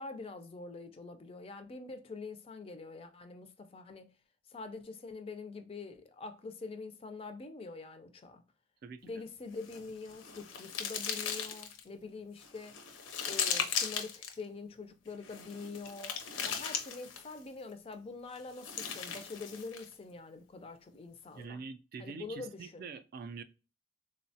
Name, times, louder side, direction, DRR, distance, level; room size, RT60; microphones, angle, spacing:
voice 1, 0.0-4.1 4.5-8.4 9.0-12.8 13.2-16.1 16.4-21.6 22.0-22.9, left 3 dB, 30° left, 0.4 m, -45 dB
sound 1, 9.6-11.8 12.4-14.3 15.2-17.4 18.4-19.9, left 7 dB, 85° left, 0.6 m, -37 dB
voice 2, 21.4-23.4, right 5 dB, 50° right, 0.3 m, -44 dB
3.8 x 2.1 x 2.6 m
head